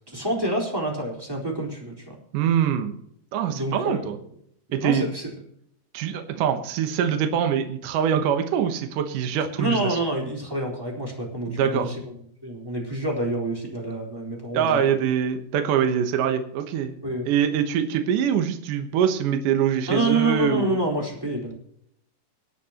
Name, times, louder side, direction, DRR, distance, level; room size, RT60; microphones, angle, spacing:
voice 1, 0.1-2.1 3.5-4.1 4.8-5.3 9.6-12.1 12.4-15.0 17.0-17.3 19.9-21.5, right 1 dB, 5° right, -1 dB, 3.7 m, -27 dB
voice 2, 2.3-3.0 3.3-4.2 4.7-5.1 5.9-10.0 11.5-11.9 14.5-16.9 17.3-20.8, right 8 dB, 70° right, 6 dB, 2.6 m, -24 dB
24.0 x 9.3 x 3.0 m, 0.70 s
omnidirectional pair, 4.1 m